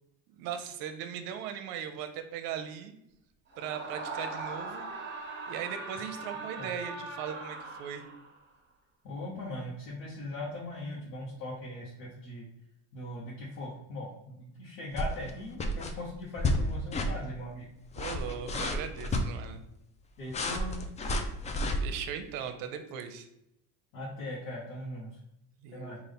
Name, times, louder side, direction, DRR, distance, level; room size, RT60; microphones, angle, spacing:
voice 1, 0.3-2.9 3.6-4.8 5.5-8.0 18.0-19.6 21.8-23.3 25.6-26.0, right 8 dB, 70° right, 8 dB, 0.6 m, -38 dB
Screaming, 3.5-8.4, right 3 dB, 30° right, 1.0 m, -40 dB
voice 2, 9.0-12.4 12.9-17.7 20.2-20.7 23.9-25.1 25.7-26.0, left 1 dB, 85° left, -6 dB, 1.0 m, -40 dB
sound 1, 14.9-15.3 15.6-15.9 16.4-16.6 16.9-17.1 17.8-19.2 20.3-21.8, left 1 dB, 20° left, 0.3 m, -30 dB
3.8 x 2.5 x 3.5 m, 0.80 s
supercardioid pair, 110°, 36 cm